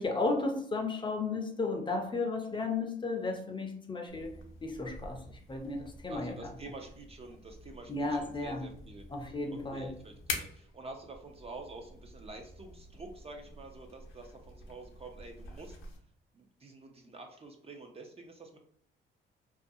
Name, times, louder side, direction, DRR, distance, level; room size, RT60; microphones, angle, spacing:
voice 1, 0.0-4.3 4.6-6.5 7.9-8.7 9.1-9.9, left 3 dB, 25° left, 3 dB, 0.5 m, -34 dB
sound 1, 4.1-16.0, left 4 dB, 85° left, 0.5 m, -47 dB
voice 2, 6.1-15.8 16.3-18.6, right 2 dB, 30° right, 3 dB, 0.4 m, -48 dB
2.4 x 2.2 x 2.6 m, 0.62 s
cardioid pair, 90°, 20 cm